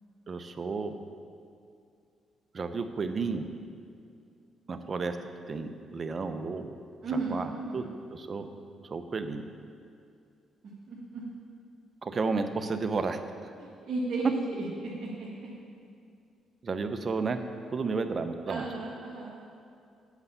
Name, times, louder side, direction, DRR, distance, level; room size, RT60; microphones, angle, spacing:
voice 1, 0.3-0.9 2.5-3.5 4.7-5.2 5.5-6.7 7.3-7.5 7.7-7.8 8.2-8.5 8.8-9.4 12.0-13.2 16.6-17.4 17.7-18.6, right 4 dB, 40° right, 8 dB, 0.6 m, -32 dB
voice 2, 7.0-7.9 10.6-11.2 13.6-15.5 18.5-19.4, right 3 dB, 60° right, -5 dB, 1.4 m, -35 dB
8.1 x 5.4 x 6.9 m, 2.4 s
cardioid pair, 90°, 0 cm